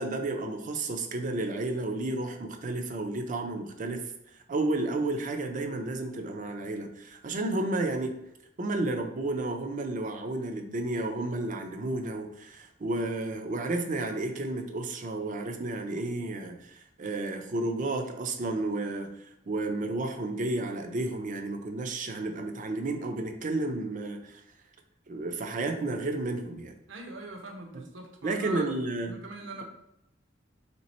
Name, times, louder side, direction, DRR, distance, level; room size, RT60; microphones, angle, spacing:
voice 1, 0.0-4.0 4.5-8.1 8.6-24.4 25.1-26.7 28.2-29.1, right 2 dB, 40° right, 5 dB, 0.5 m, -32 dB
voice 2, 26.9-28.7 29.1-29.6, right 2 dB, 75° right, 3 dB, 0.8 m, -41 dB
3.4 x 2.9 x 4.1 m, 0.81 s
head